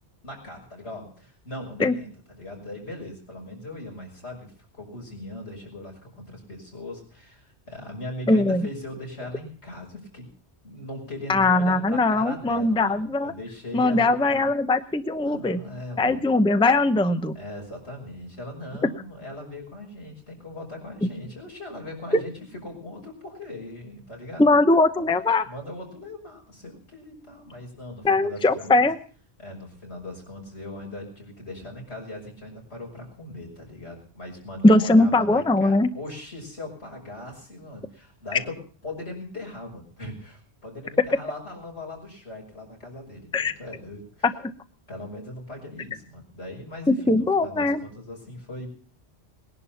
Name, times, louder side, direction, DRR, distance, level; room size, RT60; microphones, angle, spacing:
voice 1, 0.2-10.3 10.6-14.5 15.2-16.2 17.3-24.5 25.0-25.1 25.4-28.7 29.4-44.3 44.9-48.7, left 1 dB, 80° left, 0 dB, 6.2 m, -39 dB
voice 2, 8.3-8.6 11.3-13.3 13.7-15.6 16.0-17.4 22.1-22.2 24.4-25.4 28.0-29.0 34.6-35.9 43.3-43.5 46.9-47.8, left 2 dB, 5° left, 10 dB, 0.7 m, -20 dB
20.0 x 11.0 x 5.7 m, 0.42 s
omnidirectional pair, 1.1 m